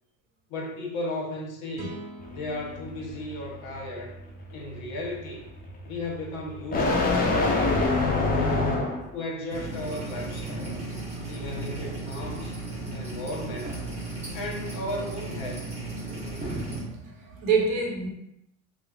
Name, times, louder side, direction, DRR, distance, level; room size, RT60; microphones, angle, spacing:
voice 1, 0.5-2.0 2.3-4.1 4.5-5.5 5.8-8.6 9.1-10.7 11.3-12.6 12.9-13.8 14.3-15.7, left 1 dB, 60° left, 0 dB, 0.9 m, -35 dB
sound 1, 1.7-5.0, left 1 dB, 80° right, 0.7 m, -45 dB
sound 2, 2.2-9.2, left 3 dB, 20° left, 0.5 m, -27 dB
sound 3, 9.5-16.8, right 2 dB, 15° right, 1.0 m, -35 dB
voice 2, 16.9-18.1, right 5 dB, 50° right, -1 dB, 0.8 m, -26 dB
3.0 x 2.0 x 2.3 m, 0.80 s
hypercardioid pair, 80°, 41 cm